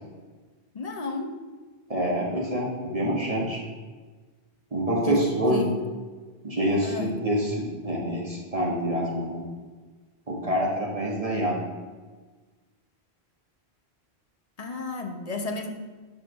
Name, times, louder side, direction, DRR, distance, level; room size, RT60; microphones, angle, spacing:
voice 1, 0.7-1.3 5.0-5.8 6.8-7.2 14.6-15.7, left 3 dB, 40° left, 4 dB, 0.8 m, -32 dB
voice 2, 1.9-3.6 4.7-5.6 6.4-7.6 7.8-9.4 10.3-11.6, equal, 35° right, -3 dB, 1.6 m, -26 dB
5.6 x 5.0 x 6.3 m, 1.4 s
omnidirectional pair, 1.1 m